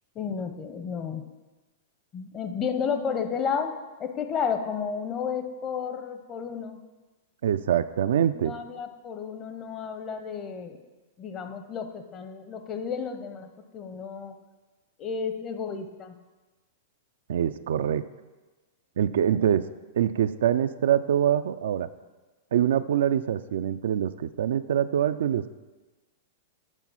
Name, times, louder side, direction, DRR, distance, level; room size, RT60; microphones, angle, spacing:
voice 1, 0.1-1.3 2.1-6.8 8.4-10.8 11.2-14.4 15.0-16.1 19.3-19.4, left 6 dB, 30° left, 8 dB, 0.8 m, -32 dB
voice 2, 7.4-8.5 17.3-18.0 19.0-19.7 20.0-21.9 22.5-25.5, right 10 dB, 70° right, 12 dB, 0.3 m, -24 dB
8.1 x 4.2 x 5.6 m, 1.2 s
hypercardioid pair, 110°, 0 cm